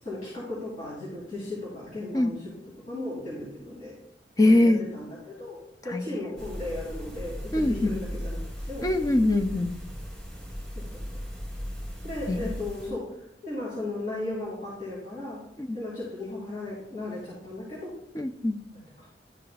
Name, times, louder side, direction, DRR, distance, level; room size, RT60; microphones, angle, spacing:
voice 1, 0.0-2.6 2.9-3.9 4.4-9.1 10.7-11.0 12.0-13.1 13.4-15.4 15.7-17.9 18.7-19.1, left 2 dB, 40° left, -9 dB, 2.5 m, -36 dB
voice 2, 4.4-4.8 5.9-6.1 7.5-7.9 8.8-9.8 12.3-12.4 15.6-15.8 18.2-18.6, left 1 dB, 20° left, 6 dB, 0.4 m, -22 dB
sound 1, 6.4-12.9, equal, 5° left, 1.7 m, -37 dB
11.5 x 5.0 x 2.3 m, 0.80 s
head